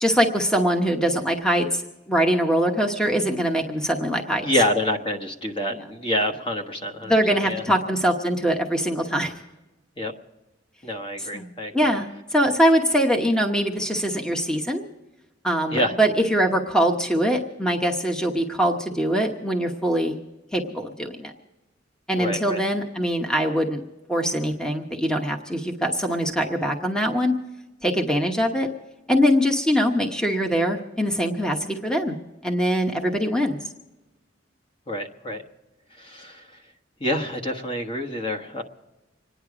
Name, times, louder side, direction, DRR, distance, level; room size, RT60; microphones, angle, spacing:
voice 1, 0.0-1.8 2.1-4.5 7.0-9.3 11.2-14.8 15.4-20.2 20.5-21.3 22.1-23.8 24.1-27.3 27.8-28.7 29.1-32.1 32.4-33.7, equal, 5° left, 3 dB, 1.0 m, -23 dB
voice 2, 4.4-7.6 10.0-10.1 10.8-11.7 15.7-16.0 22.2-22.6 34.9-35.4 36.0-36.5 37.0-38.6, left 1 dB, 30° left, 3 dB, 1.3 m, -27 dB
26.0 x 10.0 x 4.9 m, 1.0 s
head